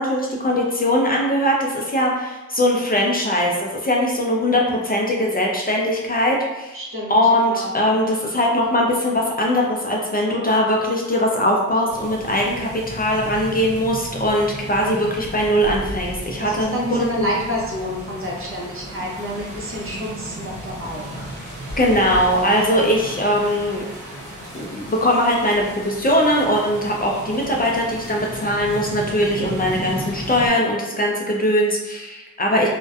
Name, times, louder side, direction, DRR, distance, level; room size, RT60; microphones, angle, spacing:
voice 1, 0.0-6.8 7.1-17.3 21.8-23.8 24.5-32.7, equal, 30° left, -1 dB, 0.4 m, -20 dB
voice 2, 6.7-7.2 7.5-7.7 16.4-21.0 29.8-30.0, equal, 45° right, -3 dB, 0.7 m, -28 dB
sound 1, 11.9-30.5, right 1 dB, 85° right, 0.9 m, -34 dB
2.5 x 2.1 x 2.3 m, 1.1 s
cardioid pair, 55°, 31 cm